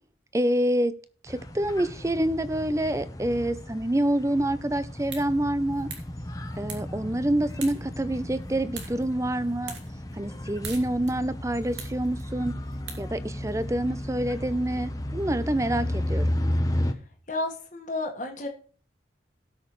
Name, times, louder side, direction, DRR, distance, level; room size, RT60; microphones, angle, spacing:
voice 1, 0.3-0.9 1.2-5.9 6.6-9.8 10.1-12.6 13.0-16.3, right 1 dB, 15° right, 14 dB, 0.5 m, -27 dB
sound 1, 1.3-16.9, left 1 dB, 20° left, 0.8 m, -33 dB
sound 2, 4.8-13.6, right 5 dB, 85° right, 2.5 m, -46 dB
voice 2, 17.3-18.5, left 2 dB, 45° left, 1 dB, 1.6 m, -32 dB
17.5 x 6.3 x 3.1 m, 0.42 s
head